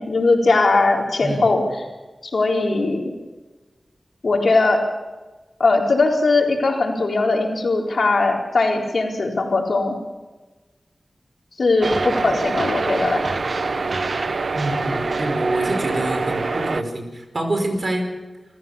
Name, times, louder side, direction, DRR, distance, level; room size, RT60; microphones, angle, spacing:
voice 1, 0.0-1.8 2.3-3.1 4.2-4.8 5.6-10.0 11.6-13.2, left 3 dB, 75° left, 1 dB, 4.2 m, -19 dB
sound 1, 11.8-16.8, right 3 dB, 70° right, 1.1 m, -24 dB
voice 2, 14.5-18.1, right 1 dB, 50° right, 5 dB, 5.1 m, -26 dB
27.5 x 15.5 x 7.3 m, 1.2 s
wide cardioid pair, 80°, 0 cm